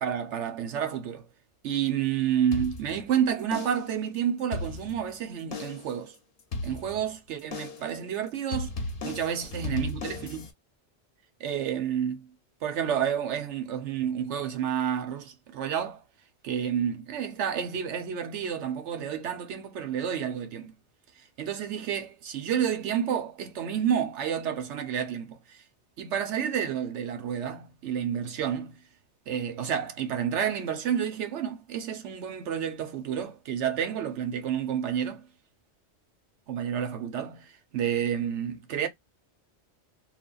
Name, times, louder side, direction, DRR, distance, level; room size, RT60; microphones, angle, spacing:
voice 1, 0.0-1.3 1.6-6.1 6.6-8.7 9.0-10.5 11.4-12.3 12.6-16.0 16.4-20.7 21.4-25.6 26.0-28.8 29.3-35.3 36.5-38.9, right 8 dB, 80° right, 1.0 m, -30 dB
sound 1, 2.5-3.1 3.5-4.0 4.4-5.1 5.5-6.0 6.5-7.1 7.5-8.0 8.5-10.5, left 3 dB, 55° left, 0.9 m, -36 dB
3.3 x 2.2 x 2.3 m
omnidirectional pair, 1.2 m